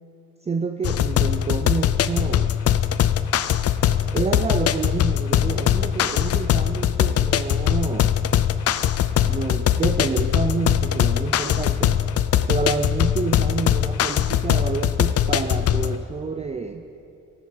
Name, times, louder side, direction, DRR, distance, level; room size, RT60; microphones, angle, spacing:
voice 1, 0.4-2.6 4.1-8.2 9.2-12.0 12.5-16.8, right 4 dB, 20° right, 6 dB, 0.5 m, -28 dB
sound 1, 0.8-16.0, left 10 dB, 50° left, 0.5 m, -21 dB
16.0 x 9.3 x 4.5 m, 2.7 s
cardioid pair, 90°, 30 cm